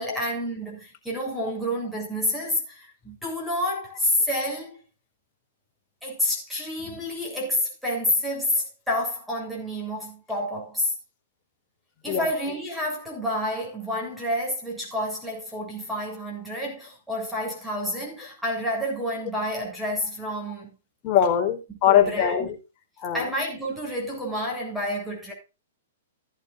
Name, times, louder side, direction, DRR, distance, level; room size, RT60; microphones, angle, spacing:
voice 1, 0.0-4.8 6.0-10.9 12.0-20.7 21.7-22.5 23.1-25.3, left 1 dB, ahead, 7.6 m, -29 dB
voice 2, 21.0-22.5 23.0-23.2, left 9 dB, 30° left, 4.1 m, -21 dB
15.5 x 11.0 x 2.6 m
hypercardioid pair, 140°, 0 cm